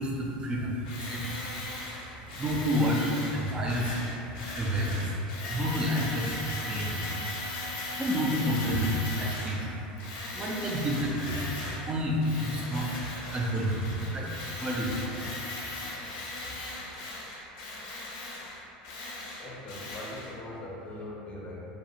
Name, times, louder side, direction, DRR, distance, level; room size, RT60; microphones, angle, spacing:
voice 1, 0.0-16.6, equal, 20° right, -3 dB, 0.4 m, -31 dB
Tools, 0.8-9.6 10.0-11.9 12.2-20.3, left 2 dB, 75° left, 0.5 m, -38 dB
voice 2, 19.4-21.6, left 1 dB, 30° left, -4 dB, 0.5 m, -41 dB
2.4 x 2.0 x 2.8 m, 2.9 s
hypercardioid pair, 100°, 5 cm